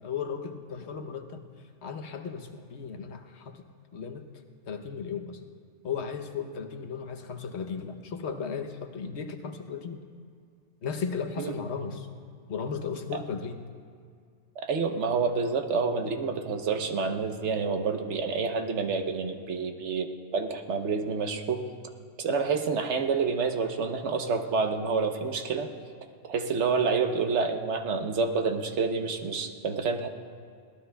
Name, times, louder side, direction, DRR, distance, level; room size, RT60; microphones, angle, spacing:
voice 1, 0.0-1.5 1.8-3.6 3.9-4.3 4.7-5.4 5.8-10.0 10.8-12.1 12.5-13.6, left 6 dB, 75° left, 7 dB, 1.1 m, -35 dB
voice 2, 14.6-21.6 22.2-25.7 26.3-30.1, right 5 dB, 80° right, 5 dB, 1.2 m, -28 dB
22.0 x 18.0 x 2.3 m, 2.2 s
omnidirectional pair, 1.2 m